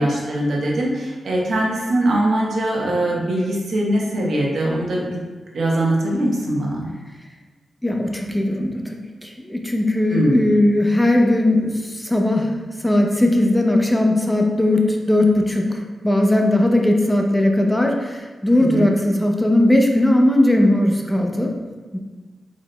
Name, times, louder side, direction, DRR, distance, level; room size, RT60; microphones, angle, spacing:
voice 1, 0.0-5.2 5.5-6.8 10.1-10.5 18.7-18.9, right 1 dB, 70° right, -3 dB, 1.0 m, -21 dB
voice 2, 7.8-21.5 21.9-22.0, left 1 dB, 10° left, 1 dB, 0.6 m, -18 dB
4.9 x 3.9 x 2.2 m, 1.3 s
cardioid pair, 75°, 0 cm